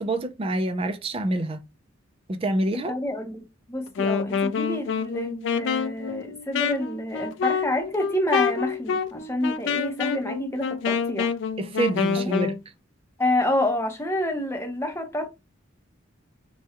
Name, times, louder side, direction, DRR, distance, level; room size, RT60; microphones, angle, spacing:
voice 1, 0.0-1.6 2.3-3.0 11.6-12.6, right 1 dB, 30° right, 0.4 m, -26 dB
voice 2, 2.9-11.3 12.2-12.4 13.2-15.3, left 1 dB, 15° left, 0.7 m, -28 dB
Wind instrument woodwind instrument, 3.9-12.6, left 6 dB, 60° left, 0.3 m, -27 dB
4.6 x 2.3 x 2.8 m
head